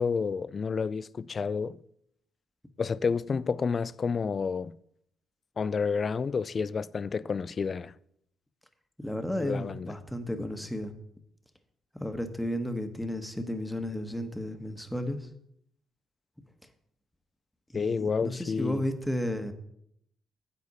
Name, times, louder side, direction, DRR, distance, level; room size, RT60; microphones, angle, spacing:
voice 1, 0.0-1.8 2.8-4.7 5.6-7.9 9.4-9.9 17.7-18.8, left 5 dB, 40° left, 0.3 m, -30 dB
voice 2, 9.0-10.9 11.9-15.3 17.7-19.5, left 1 dB, 5° left, 1.2 m, -33 dB
9.8 x 8.0 x 4.1 m
cardioid pair, 90°, 0 cm